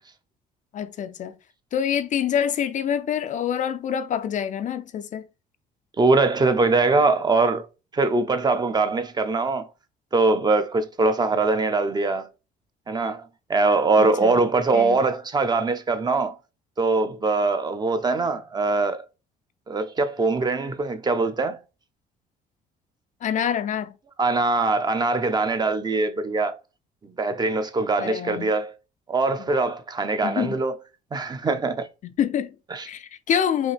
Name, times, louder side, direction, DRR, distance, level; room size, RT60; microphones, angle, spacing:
voice 1, 0.7-1.3 1.7-5.3 14.0-14.4 14.7-15.0 23.2-23.9 28.0-28.5 30.2-30.5 32.2-32.5 32.9-33.7, left 8 dB, 45° left, 0.5 m, -26 dB
voice 2, 6.0-7.7 7.9-9.7 10.1-12.3 12.9-13.2 13.5-16.4 16.8-19.0 19.7-21.6 24.2-26.6 27.0-28.7 29.1-30.8 31.1-31.9 32.7-32.9, right 3 dB, 25° right, 0.7 m, -22 dB
5.2 x 2.7 x 3.3 m
cardioid pair, 110°, 17 cm